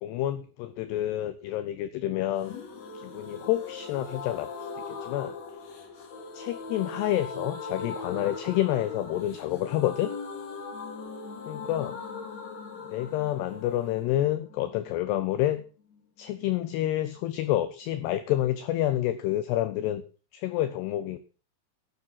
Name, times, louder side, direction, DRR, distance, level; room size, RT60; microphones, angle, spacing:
voice 1, 0.0-2.6 2.9-5.3 6.3-10.1 11.5-11.9 12.9-15.6 16.2-20.0 20.3-21.2, left 13 dB, 85° left, 12 dB, 2.4 m, -28 dB
sound 1, 2.4-16.0 16.3-16.4 16.6-16.7, left 4 dB, 45° left, 2.6 m, -40 dB
11.5 x 9.9 x 6.0 m, 0.37 s
omnidirectional pair, 5.6 m